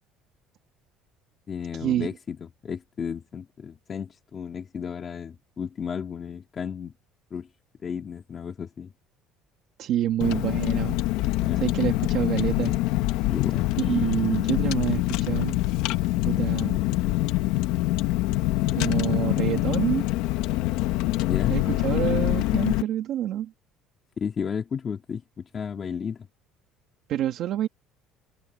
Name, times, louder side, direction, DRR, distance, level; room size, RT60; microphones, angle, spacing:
voice 1, 1.5-2.4 2.6-6.9 7.3-7.5 7.8-8.9 11.4-11.7 13.3-13.7 21.3-21.6 24.2-26.3, left 7 dB, 25° left, 2.6 m, -33 dB
voice 2, 9.8-11.0 11.6-12.7 13.8-15.6 16.2-16.8 18.7-20.1 21.5-23.5 27.1-27.7, right 12 dB, 50° right, 1.8 m, -27 dB
Car, 10.2-22.8, left 17 dB, 80° left, 1.1 m, -25 dB
open air
cardioid pair, 170°, 0 cm